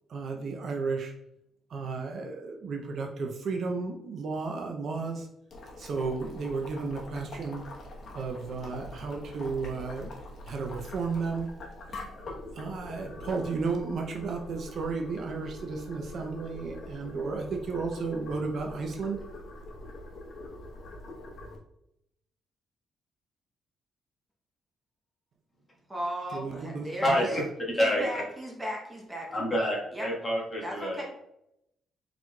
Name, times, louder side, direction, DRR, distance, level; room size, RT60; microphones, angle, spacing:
voice 1, 0.1-1.1 1.7-5.3 5.8-7.6 8.1-10.1 10.5-11.5 12.5-19.2 26.3-27.2, right 4 dB, 50° right, 2 dB, 0.5 m, -33 dB
Boiling, 5.5-21.6, left 1 dB, 45° left, 1.0 m, -44 dB
voice 2, 25.9-27.3 27.7-29.3 29.9-30.1 30.6-31.0, equal, 10° right, -2 dB, 0.8 m, -36 dB
voice 3, 27.0-27.4 27.8-28.2 29.3-31.0, equal, 20° left, -4 dB, 1.4 m, -27 dB
4.6 x 4.0 x 2.3 m, 0.81 s
cardioid pair, 140°, 0 cm